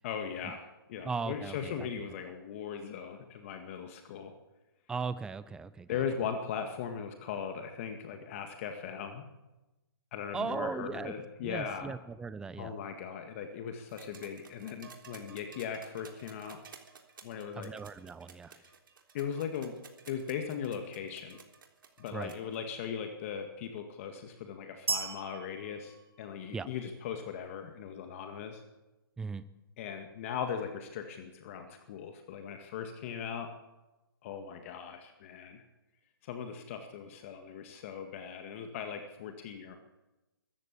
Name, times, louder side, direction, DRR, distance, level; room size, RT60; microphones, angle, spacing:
voice 1, 0.0-4.3 5.9-9.2 10.1-12.0 12.6-16.6 17.2-17.7 19.1-19.8 20.1-21.4 22.0-28.6 29.8-33.5 34.2-35.6 36.2-39.8, left 7 dB, 35° left, 5 dB, 2.1 m, -39 dB
voice 2, 1.0-1.9 4.9-5.9 10.3-11.1 11.4-12.7 17.6-18.6 22.1-22.3 26.5-26.7 29.2-29.4, right 5 dB, 5° right, 15 dB, 0.7 m, -37 dB
sound 1, 13.9-22.6 23.8-23.9, right 6 dB, 60° right, 3.5 m, -54 dB
sound 2, 24.9-26.8, right 4 dB, 85° right, 2.3 m, -37 dB
22.0 x 14.0 x 8.6 m, 1.1 s
hypercardioid pair, 150°, 12 cm